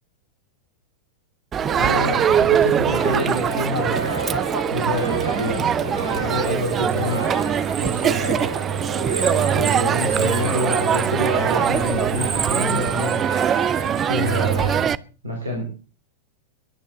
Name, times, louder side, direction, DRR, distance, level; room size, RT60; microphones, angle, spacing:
Crowd, 1.5-15.0, right 8 dB, 25° right, 0.5 m, -22 dB
sound 1, 1.6-14.9, equal, 85° left, 1.3 m, -32 dB
voice 1, 1.7-7.2 7.8-8.4 9.5-13.2 14.0-14.9 15.2-15.6, left 1 dB, 75° right, 1 dB, 4.2 m, -27 dB
21.5 x 9.0 x 3.8 m, 0.35 s
figure-of-eight pair, 90°, 0 cm